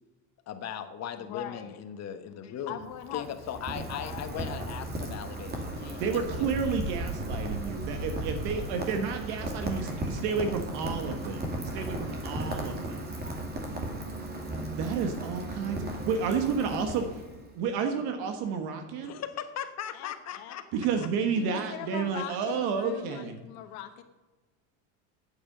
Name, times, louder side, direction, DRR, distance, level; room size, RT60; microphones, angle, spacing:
voice 1, 0.5-2.9 3.1-6.6 19.0-20.6 21.0-21.1, left 9 dB, 40° left, 9 dB, 1.1 m, -38 dB
voice 2, 1.2-1.8 2.7-3.3 3.8-4.3 19.9-20.6 21.4-24.0, left 12 dB, 70° left, 6 dB, 1.2 m, -41 dB
Rain, 2.7-17.5, right 1 dB, 25° right, 2.4 m, -35 dB
voice 3, 6.0-13.1 14.8-17.1 17.5-19.2 20.7-23.4, right 6 dB, 70° right, 6 dB, 1.4 m, -31 dB
8.6 x 8.6 x 6.5 m, 1.2 s
cardioid pair, 125°, 39 cm